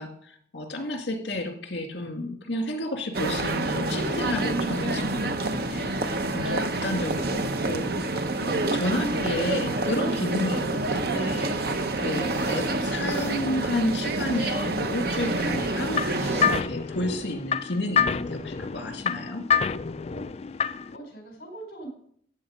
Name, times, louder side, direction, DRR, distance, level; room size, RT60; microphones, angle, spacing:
voice 1, 0.0-10.7 10.9-19.5, left 1 dB, 75° left, 5 dB, 2.1 m, -31 dB
sound 1, 3.1-16.6, right 2 dB, 60° right, 0.8 m, -28 dB
sound 2, 11.3-11.6 12.1-12.7 13.1-13.4 14.1-15.5 16.1-16.4, left 1 dB, 45° right, 5.7 m, -39 dB
sound 3, 15.5-21.0, left 7 dB, 35° left, 0.4 m, -28 dB
voice 2, 18.9-19.4 20.1-20.2 20.5-21.9, right 1 dB, 55° left, 1 dB, 4.7 m, -45 dB
13.5 x 8.4 x 5.1 m, 0.62 s
head